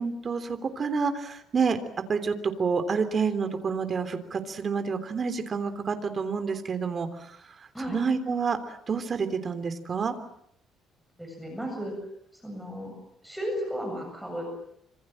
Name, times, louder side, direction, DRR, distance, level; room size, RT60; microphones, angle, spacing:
voice 1, 0.0-1.8 2.1-7.3 7.9-10.1, right 5 dB, 30° right, 9 dB, 3.3 m, -28 dB
voice 2, 11.2-11.9 12.4-12.9 13.2-14.5, equal, ahead, 2 dB, 7.6 m, -34 dB
26.5 x 26.5 x 7.7 m, 0.73 s
cardioid pair, 145°, 0 cm